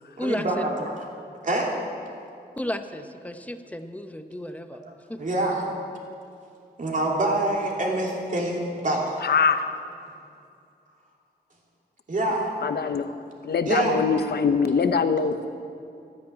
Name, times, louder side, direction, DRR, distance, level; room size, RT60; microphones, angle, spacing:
voice 1, 0.2-0.7 1.4-1.7 5.2-5.7 6.8-9.2 12.1-12.5 13.7-14.0, right 2 dB, 50° right, -2 dB, 2.9 m, -25 dB
voice 2, 2.6-4.8 5.1-5.2 12.3-12.4, left 1 dB, 10° left, 8 dB, 0.8 m, -33 dB
voice 3, 9.2-9.7 12.6-13.1 13.4-15.5, left 5 dB, 70° left, 10 dB, 0.8 m, -23 dB
12.5 x 10.0 x 8.9 m, 2.5 s
wide cardioid pair, 110°, 17 cm